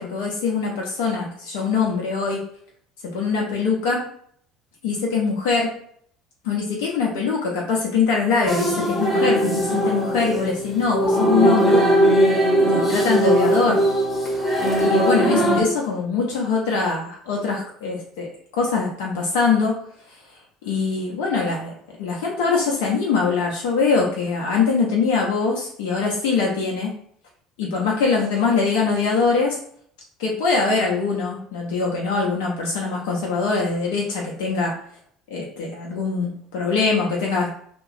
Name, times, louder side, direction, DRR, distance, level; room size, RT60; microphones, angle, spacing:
voice 1, 0.0-2.4 3.0-4.0 4.8-5.7 6.4-11.8 12.6-13.8 14.8-19.8 20.6-21.7 22.0-26.9 27.6-29.6 30.2-34.7 35.3-37.5, left 4 dB, 65° left, -2 dB, 0.6 m, -23 dB
sound 1, 8.5-15.6, right 1 dB, 10° left, 0.9 m, -19 dB
2.9 x 2.2 x 2.6 m, 0.63 s
figure-of-eight pair, 60°, 0 cm